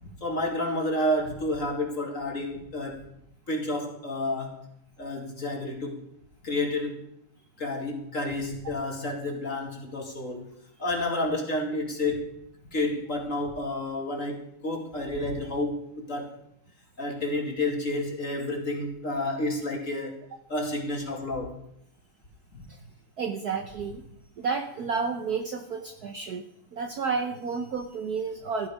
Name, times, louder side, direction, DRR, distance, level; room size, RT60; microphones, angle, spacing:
voice 1, 0.2-3.1 3.5-4.6 5.0-6.0 6.4-7.0 7.6-10.4 10.8-12.3 12.7-16.4 17.0-20.2 20.5-21.5 22.5-22.6, left 1 dB, 35° left, 0 dB, 2.9 m, -30 dB
voice 2, 23.2-24.0 24.4-26.4 26.7-28.7, right 5 dB, 60° right, 6 dB, 1.2 m, -31 dB
15.5 x 12.0 x 5.0 m, 0.76 s
omnidirectional pair, 2.4 m